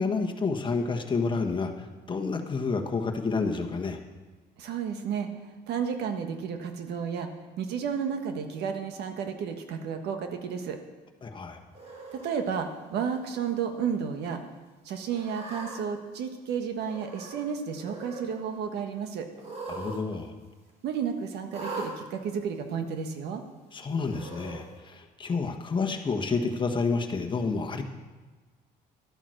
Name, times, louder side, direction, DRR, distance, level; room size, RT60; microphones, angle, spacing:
voice 1, 0.0-4.0 11.2-11.6 19.7-20.3 23.7-27.8, left 4 dB, 30° left, 3 dB, 1.4 m, -29 dB
voice 2, 4.6-5.3 5.7-7.3 7.6-10.8 12.1-14.4 14.8-19.3 20.8-23.4, right 7 dB, 75° right, 6 dB, 1.4 m, -32 dB
Cat, 11.7-12.3 13.1-13.5 13.9-14.0 15.1-15.8 16.8-17.5 17.7-18.3 19.3-20.0 20.3-20.4 21.5-21.9 22.8-22.9 24.0-24.6, right 3 dB, 40° right, 3.2 m, -40 dB
12.5 x 8.8 x 6.5 m, 1.3 s
cardioid pair, 110°, 17 cm